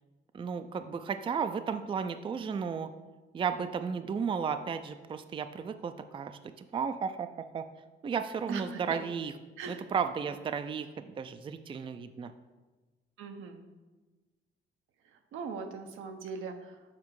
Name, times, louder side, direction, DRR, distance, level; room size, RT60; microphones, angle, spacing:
voice 1, 0.3-2.9 3.3-7.3 7.5-7.6 8.0-9.3 9.7-12.3, right 6 dB, 25° right, 10 dB, 0.4 m, -34 dB
voice 2, 8.5-9.0 9.6-9.8 13.2-13.6 15.1-16.8, right 5 dB, 85° right, 6 dB, 0.8 m, -40 dB
7.3 x 4.3 x 4.7 m, 1.2 s
cardioid pair, 90°, 20 cm